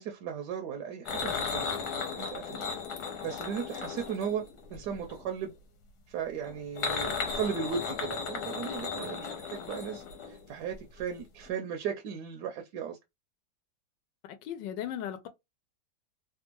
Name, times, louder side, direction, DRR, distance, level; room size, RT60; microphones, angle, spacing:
voice 1, 0.0-1.8 2.2-2.7 3.0-4.4 4.7-5.6 6.1-13.0, right 7 dB, 75° right, 1.1 m, -36 dB
sound 1, 1.1-5.2 6.4-10.7 11.0-11.1 11.4-11.5, left 5 dB, 65° left, 1.3 m, -36 dB
voice 2, 14.3-15.3, left 10 dB, 85° left, 1.3 m, -37 dB
3.4 x 2.2 x 2.9 m
omnidirectional pair, 1.9 m